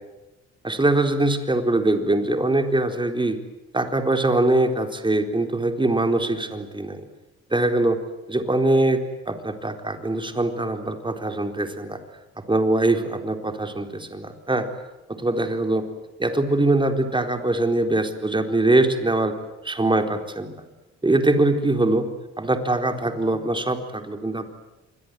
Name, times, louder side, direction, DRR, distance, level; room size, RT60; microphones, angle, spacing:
voice 1, 0.6-3.4 3.7-7.0 7.5-8.0 8.3-12.0 12.5-14.7 15.1-15.8 16.2-19.3 19.6-20.5 21.0-22.1 22.4-24.5, right 2 dB, 15° right, 6 dB, 4.1 m, -22 dB
27.5 x 22.5 x 9.4 m, 1.0 s
cardioid pair, 90°, 30 cm